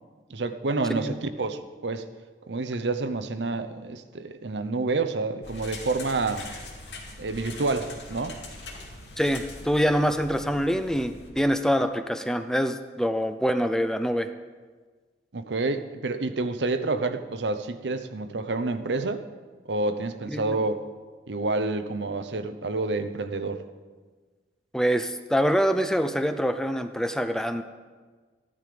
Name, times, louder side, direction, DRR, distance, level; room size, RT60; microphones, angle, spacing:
voice 1, 0.3-2.0 2.5-6.5 7.2-8.4 15.3-19.2 19.7-20.8 21.3-23.6, right 3 dB, 85° right, 10 dB, 0.8 m, -28 dB
sound 1, 5.4-11.3, left 2 dB, 85° left, 2.3 m, -42 dB
voice 2, 9.2-14.3 20.3-20.6 24.7-27.6, equal, 5° left, 9 dB, 0.5 m, -25 dB
14.5 x 11.0 x 5.1 m, 1.4 s
head